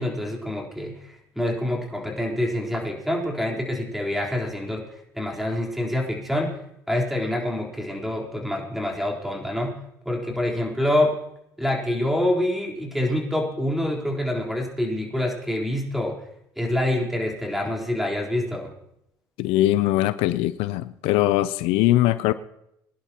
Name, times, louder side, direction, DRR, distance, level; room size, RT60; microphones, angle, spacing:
voice 1, 0.0-4.9 5.1-6.6 6.9-9.7 10.0-11.2 11.6-16.2 16.6-18.7, left 1 dB, ahead, -1 dB, 3.8 m, -26 dB
voice 2, 19.4-22.3, left 15 dB, 80° left, 15 dB, 0.5 m, -21 dB
22.5 x 11.0 x 2.9 m, 0.79 s
supercardioid pair, 75°, 10 cm